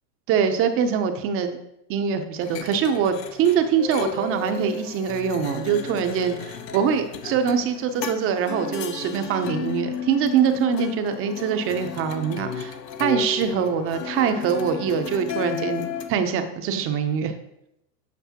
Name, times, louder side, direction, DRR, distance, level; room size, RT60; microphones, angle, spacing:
voice 1, 0.3-1.6 1.9-17.3, right 7 dB, 30° right, 8 dB, 0.6 m, -24 dB
sound 1, 2.4-16.1, left 7 dB, 90° left, 0.9 m, -34 dB
sound 2, 3.8-4.9 5.4-7.1 8.7-9.3 9.8-10.4 11.3-11.8 12.7-13.0, equal, 25° left, 0.4 m, -40 dB
8.2 x 5.3 x 2.8 m, 0.82 s
hypercardioid pair, 120°, 48 cm